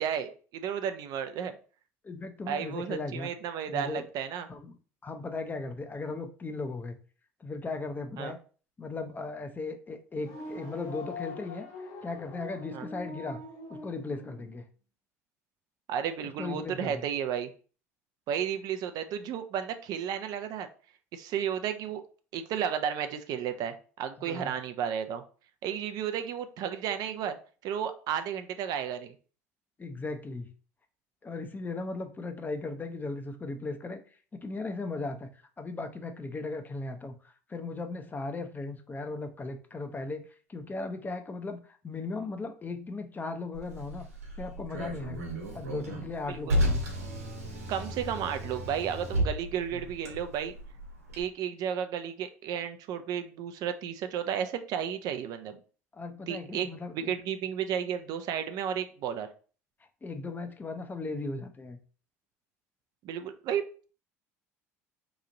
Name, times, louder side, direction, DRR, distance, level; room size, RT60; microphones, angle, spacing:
voice 1, 0.0-1.6 2.5-4.5 8.2-8.3 12.7-12.9 15.9-17.5 18.3-20.7 21.1-22.0 22.3-25.2 25.6-27.4 27.6-29.1 46.3-46.6 47.7-50.5 51.2-55.6 56.3-59.3 63.0-63.6, right 8 dB, 55° right, 8 dB, 0.5 m, -33 dB
voice 2, 2.0-3.3 3.7-4.1 4.5-4.7 5.0-7.0 7.4-8.4 8.8-11.7 12.0-13.4 13.7-14.6 16.4-17.1 24.2-24.5 29.8-30.5 31.2-34.0 34.3-35.3 35.6-37.2 37.5-44.1 44.4-45.2 45.5-46.9 49.7-49.8 55.9-57.1 60.0-61.8, left 3 dB, 25° left, 7 dB, 0.6 m, -37 dB
sound 1, 10.1-14.5, left 2 dB, 55° left, 1.3 m, -43 dB
Car, 43.5-51.2, equal, 85° right, 1.0 m, -33 dB
3.0 x 2.4 x 3.9 m, 0.39 s
hypercardioid pair, 65°, 8 cm